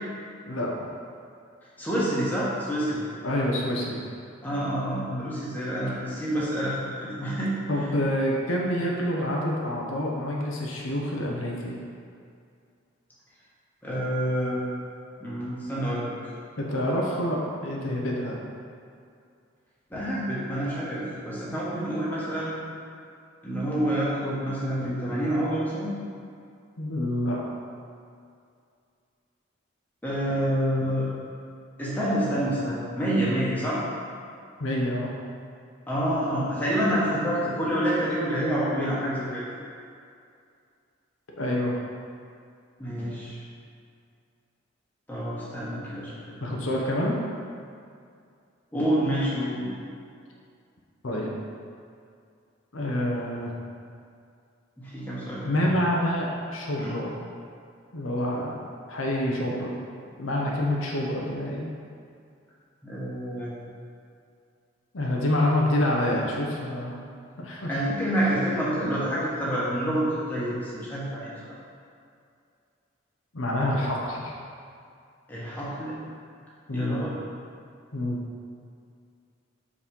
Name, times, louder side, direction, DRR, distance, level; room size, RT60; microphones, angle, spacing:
voice 1, 0.4-0.8 3.2-4.0 7.7-11.7 16.6-18.4 26.8-27.4 34.6-35.1 41.4-41.8 46.4-47.2 51.0-51.3 52.7-53.5 55.4-57.2 57.9-58.6 58.9-59.7 60.2-61.7 64.9-67.0 67.4-67.8 73.3-74.3 76.7-77.0 77.9-78.2, left 1 dB, 80° left, -2 dB, 0.9 m, -27 dB
voice 2, 1.8-3.0 4.4-7.5 13.8-14.6 15.2-16.1 19.9-22.5 23.4-25.9 30.0-31.1 31.8-33.8 35.9-39.4 42.8-43.4 45.1-46.6 48.7-49.7 53.1-53.2 54.8-55.7 56.7-57.0 62.8-63.5 67.7-71.3 75.3-76.0 76.7-77.1, equal, 10° left, -9 dB, 1.3 m, -28 dB
5.0 x 4.2 x 5.3 m, 2.3 s
head